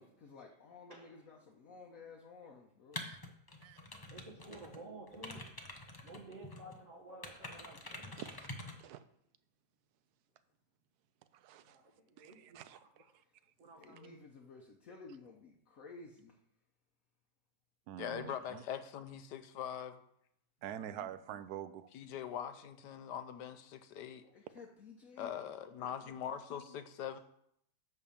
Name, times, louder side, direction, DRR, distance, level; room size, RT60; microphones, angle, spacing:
voice 1, 0.0-3.0 13.8-16.4 24.3-25.3, left 4 dB, 55° left, 0 dB, 1.2 m, -54 dB
voice 2, 0.9-1.3 1.7-2.0 4.1-5.4 6.0-8.2 11.5-13.1 13.6-14.2 20.6-21.1 24.2-24.3 25.9-26.0 27.0-27.2, right 2 dB, 45° right, -1 dB, 1.9 m, -54 dB
sound 1, 2.9-4.8 5.1-6.8 7.2-8.8, left 2 dB, 20° left, 0.6 m, -47 dB
voice 3, 8.2-8.5 8.8-9.0 11.3-11.8 12.2-13.0 17.9-18.6 20.6-21.9, right 10 dB, 75° right, 12 dB, 1.1 m, -46 dB
voice 4, 18.0-20.0 21.9-24.2 25.2-27.2, left 9 dB, 80° left, 10 dB, 1.3 m, -42 dB
11.0 x 3.6 x 7.0 m, 0.72 s
omnidirectional pair, 1.8 m